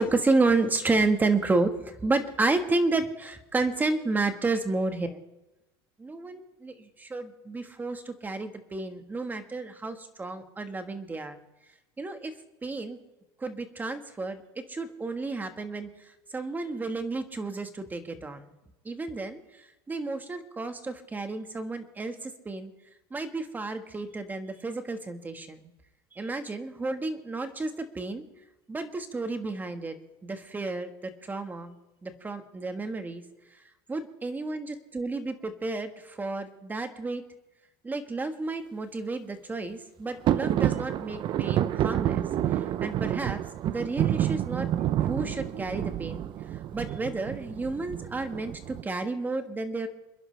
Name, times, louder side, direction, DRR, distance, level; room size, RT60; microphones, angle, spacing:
voice 1, 0.0-5.2 6.0-11.4 12.0-12.3 12.6-13.0 13.4-14.4 14.7-15.9 16.3-18.5 18.8-19.4 19.9-22.7 23.1-25.7 26.1-28.2 28.7-29.9 30.2-31.8 32.0-33.2 33.9-37.2 37.8-42.2 42.8-44.7 44.9-46.2 46.7-49.9, right 3 dB, 15° right, 7 dB, 1.5 m, -31 dB
sound 1, 40.2-48.8, right 12 dB, 40° right, 0.6 m, -29 dB
29.0 x 10.5 x 3.4 m, 1.0 s
supercardioid pair, 130°, 12 cm